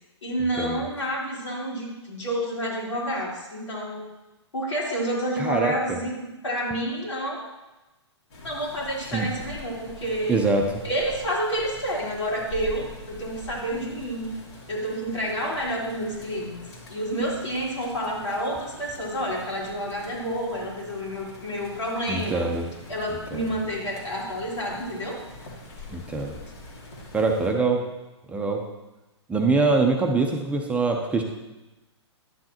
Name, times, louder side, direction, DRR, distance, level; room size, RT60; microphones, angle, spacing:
voice 1, 0.2-4.0 4.5-7.4 8.4-10.4 10.8-14.3 14.7-16.6 16.9-22.5 22.9-25.2, equal, 80° left, -4 dB, 3.4 m, -29 dB
voice 2, 5.4-6.0 9.1-9.3 10.3-10.8 22.1-22.7 23.3-23.5 25.9-26.4 27.1-27.8 28.3-28.6 29.3-31.2, right 3 dB, 10° right, 1 dB, 0.8 m, -24 dB
sound 1, 8.3-27.5, left 2 dB, 65° left, 2.6 m, -44 dB
11.0 x 7.6 x 3.0 m, 1.0 s
hypercardioid pair, 120°, 15 cm